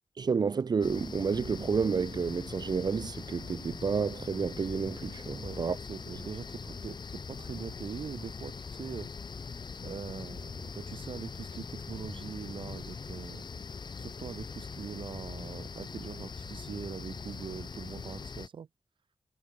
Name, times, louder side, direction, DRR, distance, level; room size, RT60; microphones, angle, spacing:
voice 1, 0.2-5.8, right 5 dB, 55° right, 0.8 m, -30 dB
sound 1, 0.8-18.5, left 5 dB, 60° left, 5.0 m, -42 dB
voice 2, 5.3-9.1 9.8-13.4 14.0-18.7, right 7 dB, 85° right, 2.2 m, -42 dB
wide cardioid pair, 80°, 8 cm